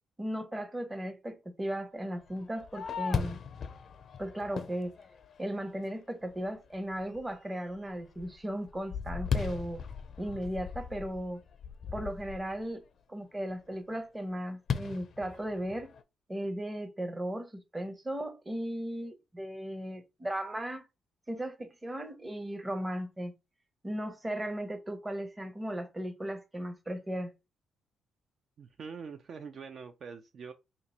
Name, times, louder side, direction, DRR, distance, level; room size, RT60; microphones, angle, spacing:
voice 1, 0.2-3.4 4.2-5.0 5.4-9.9 10.2-11.4 11.9-12.8 13.1-15.9 16.3-20.8 21.3-23.3 23.8-27.3, right 1 dB, 15° right, 0.8 m, -36 dB
Fireworks, 2.3-5.8 6.3-6.4 6.9-7.3 7.7-12.6 14.7-16.0, left 6 dB, 55° left, 0.4 m, -37 dB
voice 2, 28.6-30.5, right 5 dB, 55° right, 0.4 m, -44 dB
2.9 x 2.5 x 4.1 m
cardioid pair, 90°, 0 cm